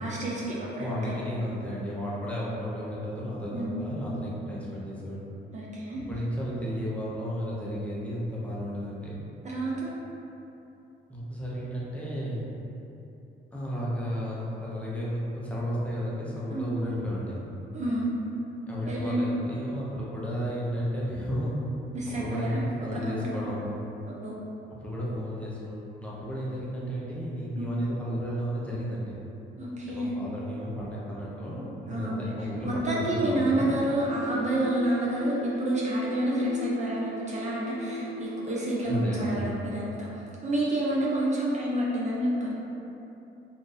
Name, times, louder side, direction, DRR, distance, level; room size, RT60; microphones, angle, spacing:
voice 1, 0.0-1.2 3.5-3.8 5.5-6.0 9.4-9.9 16.5-16.8 17.7-18.1 18.9-19.2 21.9-23.3 24.1-24.4 27.6-27.7 29.6-30.2 31.9-32.2 32.6-42.5, right 1 dB, 35° right, -6 dB, 0.6 m, -29 dB
voice 2, 0.8-5.3 6.1-9.2 11.1-12.4 13.5-17.4 18.7-21.6 22.1-23.6 24.8-29.2 29.9-33.7 38.8-39.4, equal, 5° left, -8 dB, 0.8 m, -33 dB
sound 1, 33.6-39.3, left 1 dB, 40° left, 0.8 m, -39 dB
2.6 x 2.5 x 3.8 m, 2.9 s
cardioid pair, 90°, 20 cm